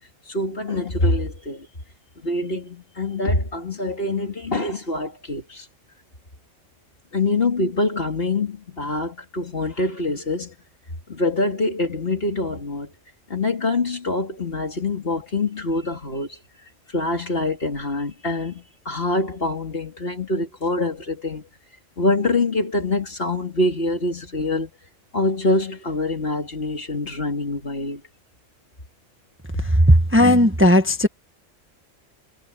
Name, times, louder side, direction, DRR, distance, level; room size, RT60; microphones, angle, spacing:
voice 1, 0.3-1.7 2.2-5.7 7.1-10.5 11.1-12.9 13.3-16.4 16.9-21.4 22.0-24.7 25.1-28.0, left 2 dB, 50° left, 2.9 m, -25 dB
voice 2, 29.6-31.1, equal, 10° right, 1.4 m, -15 dB
omnidirectional pair, 1.3 m